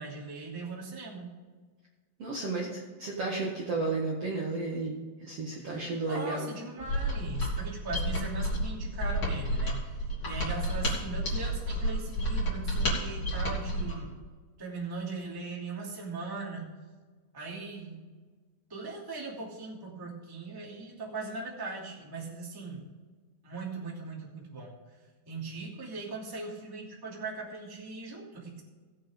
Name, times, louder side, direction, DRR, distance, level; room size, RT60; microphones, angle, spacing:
voice 1, 0.0-1.4 5.6-14.2 14.6-16.7 17.3-18.1 18.7-22.8 23.4-24.7 25.3-28.6, right 3 dB, 5° right, -4 dB, 1.9 m, -39 dB
voice 2, 2.2-6.5, right 3 dB, 50° right, -4 dB, 2.1 m, -33 dB
Mechanisms, 6.8-14.0, equal, 30° left, 3.6 m, -31 dB
18.5 x 7.9 x 3.6 m, 1.4 s
omnidirectional pair, 4.5 m